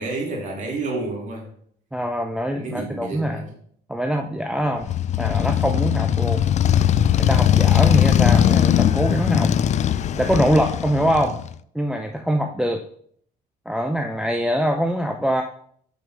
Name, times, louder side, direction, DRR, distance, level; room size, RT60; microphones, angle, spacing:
voice 1, 0.0-1.5 2.6-3.5, right 3 dB, 50° right, -1 dB, 3.0 m, -30 dB
voice 2, 1.9-3.5 3.9-6.4 7.2-9.5 10.1-11.4 11.7-12.8 13.7-15.4, equal, 5° right, 4 dB, 0.6 m, -23 dB
Motorcycle, 4.8-11.5, left 10 dB, 45° left, 0.4 m, -19 dB
6.3 x 5.5 x 6.0 m, 0.62 s
cardioid pair, 110°, 17 cm